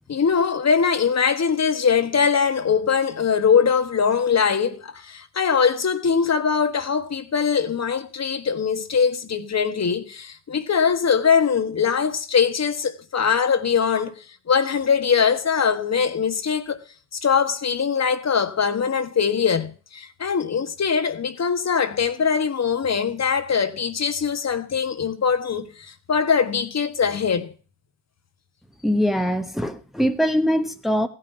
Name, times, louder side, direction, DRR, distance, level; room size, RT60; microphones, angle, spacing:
voice 1, 0.1-16.8 17.1-27.5, left 6 dB, 40° left, 1.3 m, -22 dB
voice 2, 28.8-31.1, equal, ahead, 1.1 m, -22 dB
15.0 x 5.7 x 7.8 m
supercardioid pair, 55°, 39 cm